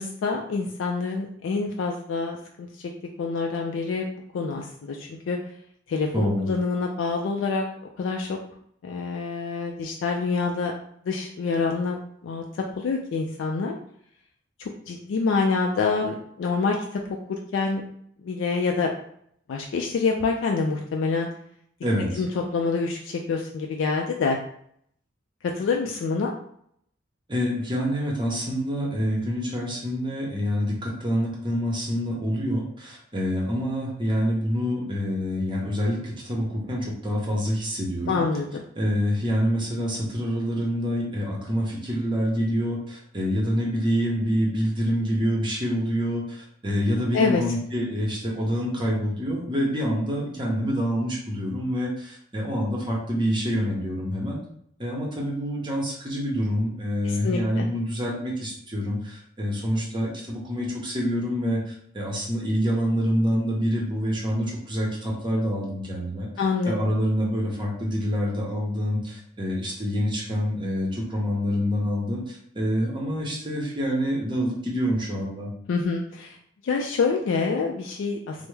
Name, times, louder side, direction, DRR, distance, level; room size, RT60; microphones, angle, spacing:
voice 1, 0.0-2.9 3.2-5.4 5.9-7.6 8.0-8.4 8.8-10.7 11.1-13.8 14.6-17.0 17.3-17.8 18.2-18.9 19.5-21.3 22.2-24.4 25.6-26.3 38.1-38.6 47.1-47.4 57.0-57.7 66.4-66.7 75.7-76.4 76.6-78.5, left 4 dB, 85° left, 1 dB, 0.3 m, -26 dB
voice 2, 6.1-6.5 21.8-22.2 27.3-38.2 38.8-54.4 54.8-66.3 66.7-75.5, equal, 25° right, -3 dB, 0.7 m, -26 dB
3.3 x 2.0 x 3.1 m, 0.68 s
head